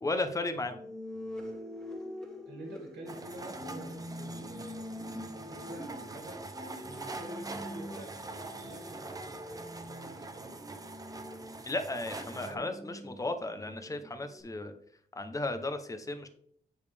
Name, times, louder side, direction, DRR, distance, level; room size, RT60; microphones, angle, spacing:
voice 1, 0.0-0.8 11.6-14.7 15.2-16.3, left 2 dB, 20° left, 8 dB, 0.8 m, -34 dB
sound 1, 0.7-14.4, left 1 dB, 5° left, 1.9 m, -45 dB
voice 2, 2.4-10.6 12.3-12.8, right 1 dB, 85° right, 0 dB, 2.2 m, -48 dB
sound 2, 3.1-12.5, right 3 dB, 20° right, 0.7 m, -44 dB
8.9 x 5.2 x 3.4 m, 0.63 s
wide cardioid pair, 145°, 17 cm